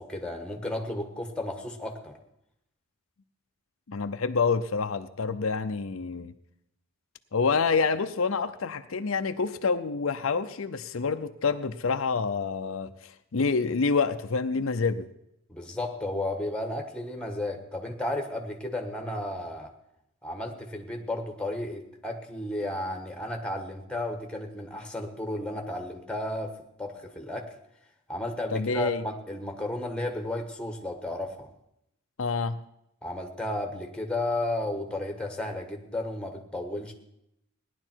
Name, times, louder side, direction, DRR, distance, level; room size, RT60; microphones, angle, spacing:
voice 1, 0.0-2.2 15.5-19.7 20.2-26.5 26.8-27.5 28.1-31.5 33.0-36.9, left 1 dB, 5° left, 3 dB, 1.4 m, -33 dB
voice 2, 3.9-6.3 7.3-15.1 28.5-29.0 32.2-32.6, left 4 dB, 70° left, 8 dB, 0.6 m, -27 dB
17.5 x 11.0 x 4.5 m, 0.81 s
head